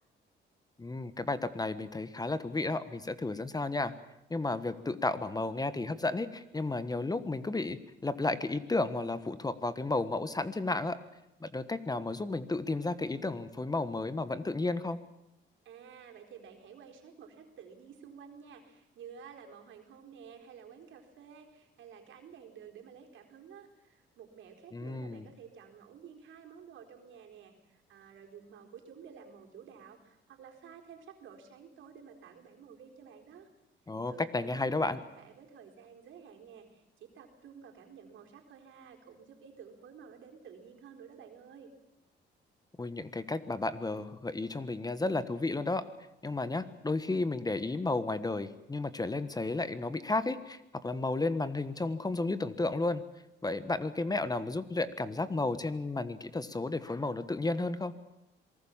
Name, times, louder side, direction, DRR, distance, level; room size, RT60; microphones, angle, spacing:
voice 1, 0.8-3.9 4.3-11.0 11.4-15.0 24.7-25.2 33.9-35.0 42.8-45.8 46.2-53.0 53.4-57.9, left 2 dB, 20° left, 13 dB, 1.3 m, -33 dB
voice 2, 15.6-33.5 34.0-41.7, right 7 dB, 75° right, 2 dB, 4.2 m, -52 dB
26.5 x 19.5 x 7.3 m, 0.87 s
cardioid pair, 90°, 20 cm